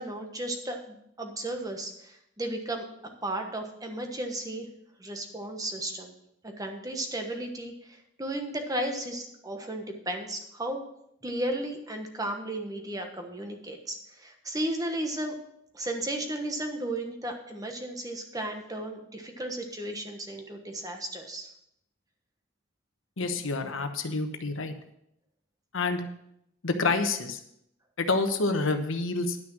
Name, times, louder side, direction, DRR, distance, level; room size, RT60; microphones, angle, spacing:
voice 1, 0.0-2.8 3.2-4.7 5.0-6.1 6.4-10.8 11.2-15.4 15.7-21.5, right 1 dB, 20° right, 4 dB, 1.2 m, -34 dB
voice 2, 23.2-24.7 25.7-26.0 26.6-27.4 28.0-29.4, left 3 dB, 80° left, 7 dB, 1.0 m, -28 dB
10.5 x 6.1 x 6.1 m, 0.77 s
head